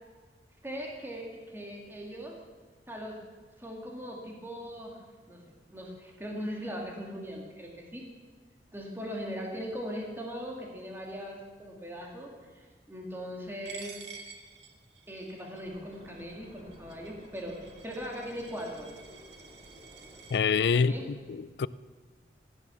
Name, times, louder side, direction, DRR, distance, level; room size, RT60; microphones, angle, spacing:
voice 1, 0.6-2.4 2.9-3.2 3.6-5.0 5.3-5.4 5.7-8.1 8.7-13.9 15.1-18.9 20.7-21.1, equal, 15° right, 2.3 m, -40 dB
Coin (dropping), 13.7-20.4, right 5 dB, 90° right, 1.7 m, -50 dB
sound 1, 15.6-20.9, equal, 35° right, 3.3 m, -53 dB
voice 2, 20.3-20.9 21.3-21.7, left 5 dB, 70° left, 0.4 m, -25 dB
15.5 x 9.8 x 7.1 m
head